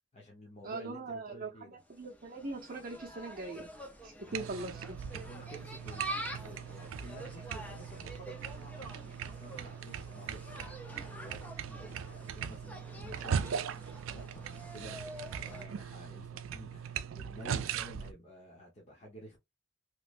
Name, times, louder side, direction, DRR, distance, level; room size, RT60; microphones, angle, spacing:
voice 1, 0.1-1.8 4.2-4.6 5.1-13.7 14.1-19.4, equal, 35° left, 0.9 m, -52 dB
voice 2, 0.6-3.7 4.0-5.0, right 2 dB, 45° right, 0.7 m, -41 dB
Insect, 1.8-15.7, right 1 dB, 10° left, 0.6 m, -47 dB
sound 1, 4.3-18.1, right 7 dB, 85° right, 0.4 m, -40 dB
3.1 x 3.0 x 2.5 m
head